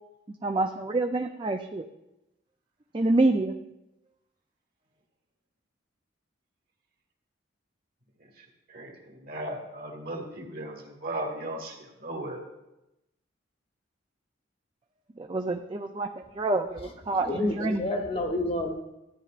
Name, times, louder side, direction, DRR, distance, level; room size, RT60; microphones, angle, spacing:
voice 1, 0.4-1.9 2.9-3.5 15.2-17.8, right 2 dB, 25° right, 4 dB, 0.4 m, -27 dB
voice 2, 8.7-12.4, right 1 dB, 50° right, 1 dB, 1.9 m, -36 dB
voice 3, 17.2-18.7, left 1 dB, 30° left, 3 dB, 0.9 m, -28 dB
13.5 x 10.0 x 2.5 m, 0.92 s
head